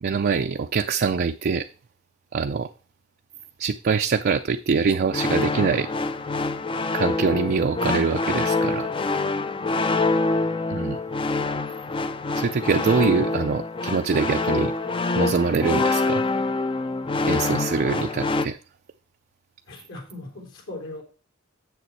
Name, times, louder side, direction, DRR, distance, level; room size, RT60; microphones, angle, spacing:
voice 1, 0.0-1.7 2.3-2.7 3.6-5.9 6.9-8.9 10.7-11.0 12.3-14.7 15.2-16.2 17.2-18.6, right 5 dB, 50° right, 0.4 m, -24 dB
sound 1, 5.1-18.5, left 3 dB, 25° left, 0.5 m, -25 dB
voice 2, 9.5-10.2 19.7-21.0, left 2 dB, 65° left, 3.3 m, -40 dB
7.8 x 6.8 x 4.6 m
head